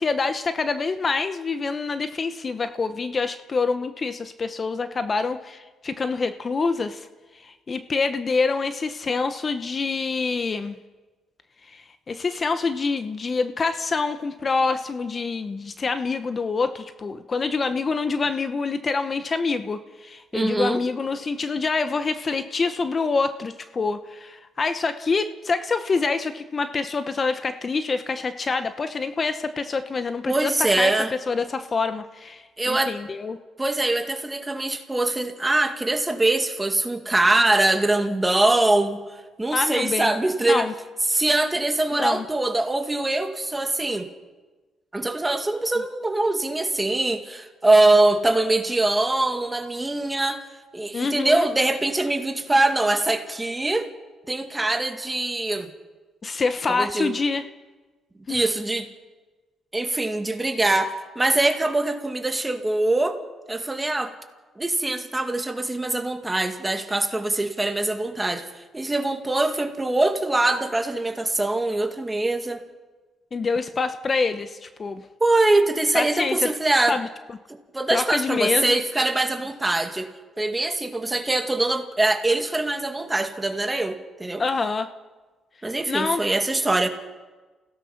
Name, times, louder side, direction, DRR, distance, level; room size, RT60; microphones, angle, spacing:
voice 1, 0.0-7.1 7.3-10.8 11.7-30.9 31.3-33.4 39.5-40.1 40.5-40.7 41.9-42.2 50.9-51.5 56.2-57.4 58.3-58.4 73.3-75.0 75.9-76.5 76.9-77.1 77.9-78.8 84.4-84.9 85.9-86.2, left 4 dB, 35° left, 10 dB, 0.9 m, -26 dB
voice 2, 20.3-20.8 30.3-31.1 32.6-32.9 33.6-39.0 39.4-40.7 41.1-44.1 44.9-50.4 50.7-53.9 54.3-55.7 56.7-57.1 58.3-58.9 59.7-63.2 63.5-64.1 64.6-72.6 75.2-77.0 77.5-80.1 80.4-84.4 85.6-86.9, right 2 dB, 15° right, 5 dB, 2.2 m, -23 dB
27.5 x 17.0 x 5.9 m, 1.3 s
cardioid pair, 90°, 0 cm